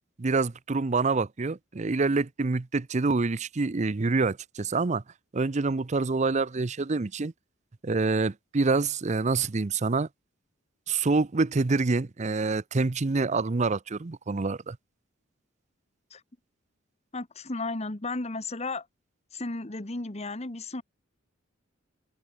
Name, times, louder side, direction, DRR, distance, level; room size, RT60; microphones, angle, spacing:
voice 1, 0.2-5.0 5.3-7.3 7.8-10.1 10.9-14.8, right 3 dB, 35° right, 0.6 m, -26 dB
voice 2, 17.1-18.9 19.3-20.8, left 2 dB, 35° left, 1.4 m, -34 dB
head